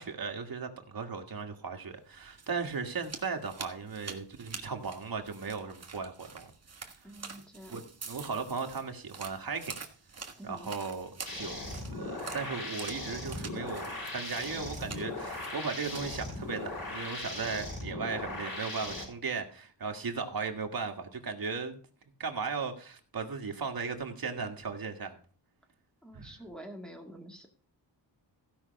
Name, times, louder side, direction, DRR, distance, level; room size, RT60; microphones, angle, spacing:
voice 1, 0.0-6.5 7.7-7.8 8.1-9.8 10.4-21.8 22.2-25.2 26.2-26.3, right 5 dB, 55° right, 1.7 m, -37 dB
sound 1, 2.1-17.3, right 5 dB, 35° right, 1.5 m, -47 dB
voice 2, 7.0-7.8 10.4-10.7 26.0-27.5, equal, ahead, 2.2 m, -47 dB
sound 2, 11.3-19.0, left 2 dB, 55° left, 4.3 m, -39 dB
15.5 x 5.7 x 5.3 m
wide cardioid pair, 130°, 43 cm